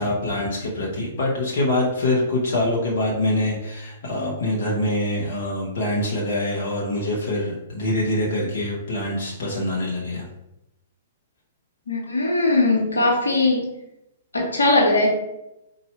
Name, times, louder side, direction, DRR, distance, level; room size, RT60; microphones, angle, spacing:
voice 1, 0.0-10.2, left 1 dB, 60° left, -3 dB, 1.0 m, -24 dB
voice 2, 11.9-13.7 14.3-15.1, left 2 dB, 80° left, -1 dB, 1.2 m, -19 dB
4.2 x 2.6 x 4.3 m, 0.87 s
figure-of-eight pair, 115°, 0 cm